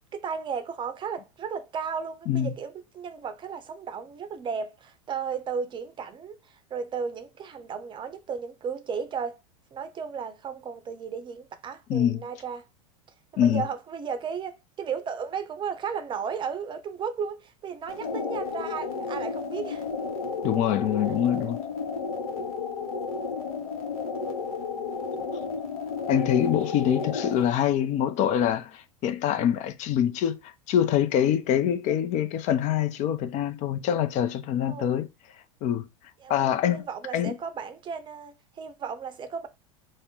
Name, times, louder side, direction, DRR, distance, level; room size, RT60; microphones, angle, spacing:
voice 1, 0.1-6.4 6.7-9.4 9.7-12.7 13.3-19.8 34.7-34.9 36.2-39.5, right 6 dB, 25° right, 0.6 m, -34 dB
sound 1, 17.9-27.5, left 5 dB, 80° left, 0.9 m, -32 dB
voice 2, 20.4-21.6 26.1-35.1 35.6-35.9 36.3-36.8 37.1-37.3, left 10 dB, 40° left, 0.4 m, -25 dB
2.7 x 2.1 x 3.5 m
hypercardioid pair, 95°, 18 cm